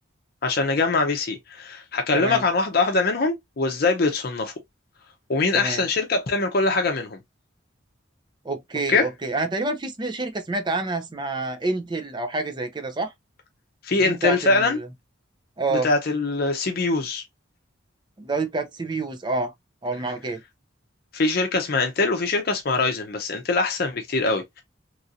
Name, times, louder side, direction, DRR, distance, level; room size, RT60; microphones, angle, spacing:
voice 1, 0.4-4.5 5.3-7.2 8.9-9.1 13.8-14.8 15.7-17.2 21.1-24.6, left 3 dB, 50° left, 0.6 m, -23 dB
voice 2, 5.5-5.8 8.4-13.1 14.0-14.9 15.6-15.9 18.2-19.5 19.8-20.4, right 2 dB, 25° right, 0.5 m, -28 dB
3.0 x 2.5 x 2.7 m
head